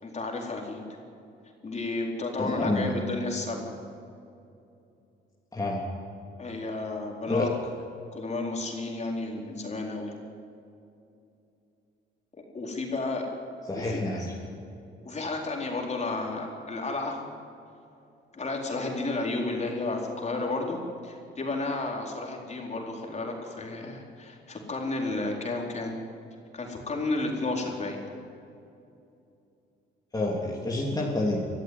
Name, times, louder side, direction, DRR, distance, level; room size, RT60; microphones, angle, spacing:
voice 1, 0.0-0.8 1.6-3.7 6.4-7.5 8.1-10.1 12.5-13.3 13.7-14.0 15.0-17.2 18.3-25.9 26.5-28.0, left 2 dB, 35° left, 0 dB, 4.3 m, -32 dB
voice 2, 2.4-2.9 5.5-5.8 7.3-7.5 13.7-14.3 30.1-31.4, left 2 dB, 20° left, -3 dB, 3.3 m, -28 dB
23.5 x 14.0 x 9.6 m, 2.7 s
cardioid pair, 90°, 20 cm